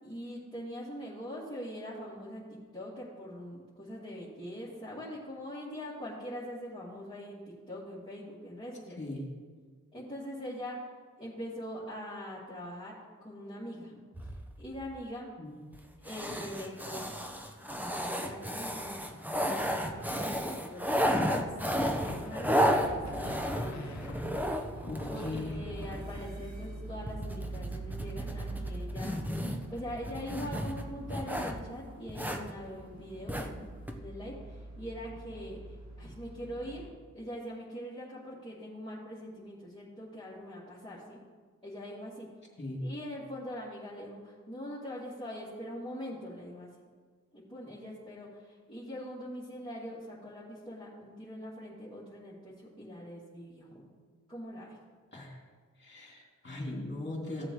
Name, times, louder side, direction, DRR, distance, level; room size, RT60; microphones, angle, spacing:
voice 1, 0.0-2.4 2.7-9.0 9.9-10.8 11.2-12.9 13.2-14.0 14.6-15.3 16.0-17.1 17.7-24.0 24.7-33.7 34.0-41.2 41.6-42.3 42.8-46.7 47.3-53.8 54.3-54.8, equal, 15° left, -10 dB, 2.5 m, -43 dB
sound 1, 14.1-14.8 15.7-15.8 16.1-26.3 27.1-31.6 32.1-32.5 33.3-33.5 33.9-34.0, equal, 5° right, 0.9 m, -33 dB
sound 2, 22.1-24.7, left 2 dB, 60° left, 0.8 m, -46 dB
sound 3, 22.8-36.9, right 2 dB, 60° right, 1.8 m, -44 dB
voice 2, 24.9-25.6 42.6-42.9 55.1-55.4 55.8-57.5, left 2 dB, 35° left, -2 dB, 2.8 m, -38 dB
15.5 x 7.6 x 3.2 m, 1.5 s
wide cardioid pair, 70°, 32 cm